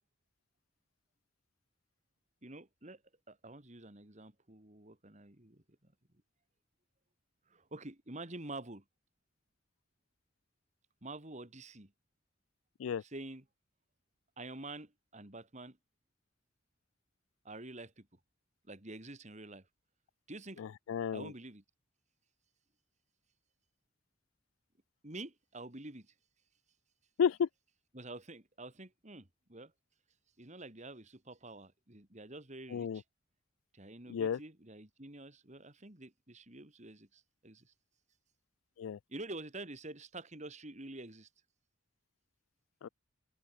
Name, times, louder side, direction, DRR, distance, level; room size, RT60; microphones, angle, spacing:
voice 1, 2.4-3.0 3.3-5.9 7.5-8.8 11.0-11.9 13.0-13.4 14.4-15.8 17.4-18.1 18.7-19.7 20.3-20.6 21.1-21.6 25.0-26.1 27.9-29.7 30.4-33.0 33.7-37.7 39.1-41.3, right 2 dB, 35° right, 2.7 m, -48 dB
voice 2, 20.6-21.3 27.2-27.5 32.7-33.0 34.1-34.4 38.8-39.0 42.8-42.9, left 7 dB, 90° left, 0.4 m, -32 dB
open air
head